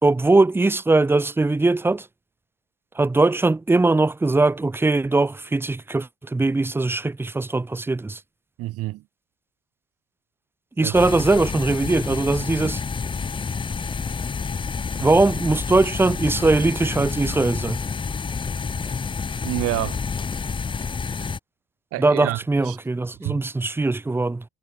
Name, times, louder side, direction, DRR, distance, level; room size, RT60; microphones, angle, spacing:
voice 1, 0.0-2.1 2.9-8.2 10.8-12.8 15.0-17.8 22.0-24.4, right 3 dB, 5° right, 1.7 m, -20 dB
voice 2, 8.6-9.0 10.8-10.9 19.4-20.0 21.2-21.3 21.9-22.8 23.2-23.4, right 17 dB, 50° right, 4.5 m, -28 dB
sound 1, 10.9-21.4, left 5 dB, 15° left, 2.7 m, -29 dB
cardioid pair, 165°, 29 cm